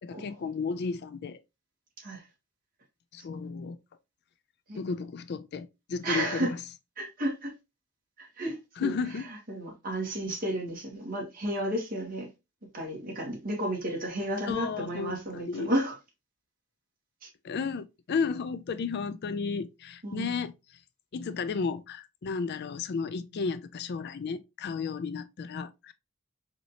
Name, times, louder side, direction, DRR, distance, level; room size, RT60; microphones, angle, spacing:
voice 1, 0.0-1.4 3.1-3.8 4.7-6.6 8.8-9.3 14.5-15.7 17.4-20.5 21.1-25.9, left 5 dB, 55° left, 0.4 m, -33 dB
voice 2, 6.0-6.5 7.0-7.5 8.2-12.3 12.7-16.0 17.2-17.3 20.0-20.4, right 1 dB, 45° right, 2.0 m, -33 dB
4.9 x 2.9 x 2.8 m
head